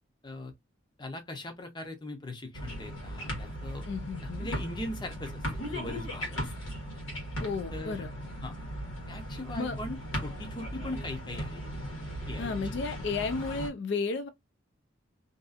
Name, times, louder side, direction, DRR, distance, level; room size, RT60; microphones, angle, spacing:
voice 1, 1.0-3.8 4.2-6.5 7.7-8.0 8.4-8.5 9.1-11.6 12.3-12.7, left 1 dB, 20° left, 0.6 m, -40 dB
sound 1, 2.5-13.7, equal, 85° left, 1.3 m, -37 dB
voice 2, 3.9-4.5 7.4-8.1 9.6-9.8 12.4-14.3, left 4 dB, 60° left, 0.3 m, -33 dB
2.6 x 2.4 x 2.3 m
head